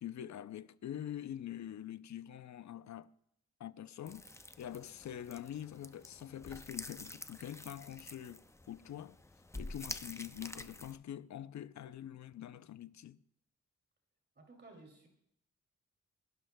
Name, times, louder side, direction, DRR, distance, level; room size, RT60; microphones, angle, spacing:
voice 1, 0.0-3.1 3.6-4.2 4.6-9.2 9.5-13.2, left 10 dB, 65° left, 0.6 m, -45 dB
sound 1, 4.1-11.0, left 2 dB, 10° left, 0.5 m, -48 dB
voice 2, 14.4-15.1, right 2 dB, 35° right, 2.7 m, -56 dB
30.0 x 12.0 x 2.3 m
wide cardioid pair, 130°, 30 cm